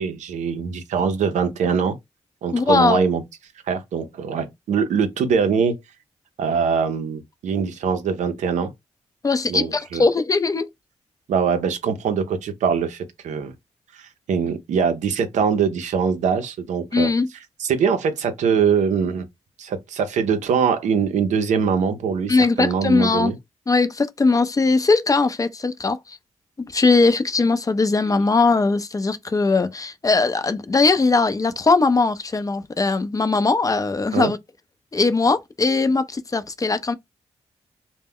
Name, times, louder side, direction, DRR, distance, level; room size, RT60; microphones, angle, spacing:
voice 1, 0.0-2.0 2.4-3.2 3.7-5.8 6.4-8.7 9.5-10.0 11.3-13.5 13.9-17.1 17.6-19.3 19.6-23.4 34.1-34.3, right 6 dB, 85° right, 0.5 m, -22 dB
voice 2, 2.5-3.0 9.2-10.7 16.9-17.3 22.3-23.3 23.7-26.2 26.6-34.4 34.9-36.9, left 3 dB, 30° left, 0.4 m, -20 dB
2.2 x 2.0 x 3.4 m
cardioid pair, 50°, 12 cm